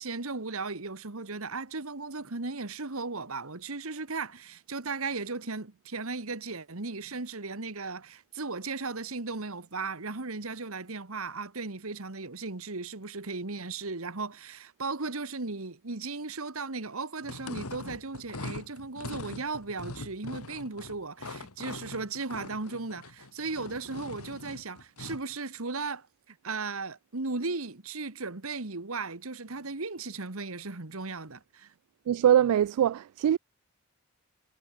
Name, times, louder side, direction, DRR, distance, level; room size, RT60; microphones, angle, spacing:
voice 1, 0.0-31.7, right 3 dB, 70° right, 1.7 m, -36 dB
sound 1, 17.2-25.3, left 2 dB, 80° left, 2.5 m, -42 dB
voice 2, 32.1-33.4, right 10 dB, 90° right, 0.3 m, -23 dB
head